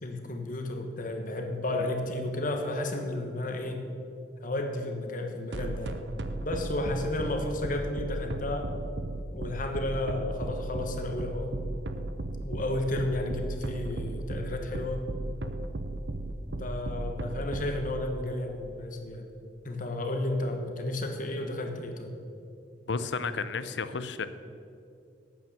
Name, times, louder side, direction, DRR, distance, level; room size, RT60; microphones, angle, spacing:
voice 1, 0.0-3.8 4.4-6.0 6.4-8.7 9.3-11.5 12.4-15.1 16.5-19.3 19.6-22.1, left 1 dB, 50° left, 4 dB, 1.3 m, -32 dB
sound 1, 5.5-17.8, right 2 dB, 80° right, 0.7 m, -35 dB
voice 2, 22.9-24.3, left 4 dB, 85° left, 13 dB, 0.6 m, -32 dB
8.9 x 8.9 x 6.7 m, 2.6 s
head